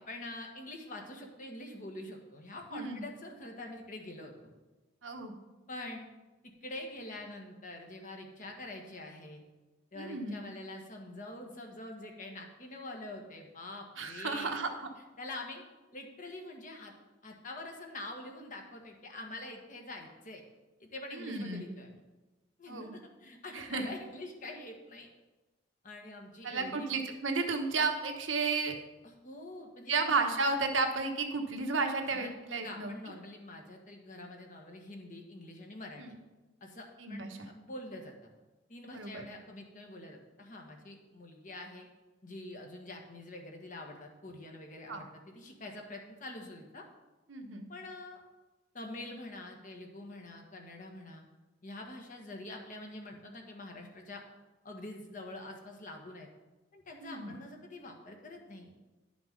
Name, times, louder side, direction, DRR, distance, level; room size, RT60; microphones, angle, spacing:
voice 1, 0.1-4.5 5.7-6.1 6.4-9.4 9.9-14.5 15.2-15.6 15.9-16.9 17.2-20.4 20.8-22.0 22.6-25.1 25.8-26.9 29.0-29.9 32.1-36.0 36.6-38.1 38.7-41.9 42.2-46.8 47.7-48.2 48.7-51.2 51.6-54.2 54.6-56.3 56.7-58.8, left 2 dB, 45° left, 2 dB, 1.5 m, -45 dB
voice 2, 2.7-3.1 5.0-5.3 9.9-10.5 14.0-14.9 21.1-21.7 22.7-23.0 23.5-23.9 26.4-28.7 29.9-32.9 36.0-36.2 37.0-37.5 38.9-39.3 44.9-45.0 47.3-47.7 57.0-57.4, right 4 dB, 85° right, 4 dB, 1.2 m, -33 dB
11.0 x 5.9 x 5.3 m, 1.1 s
head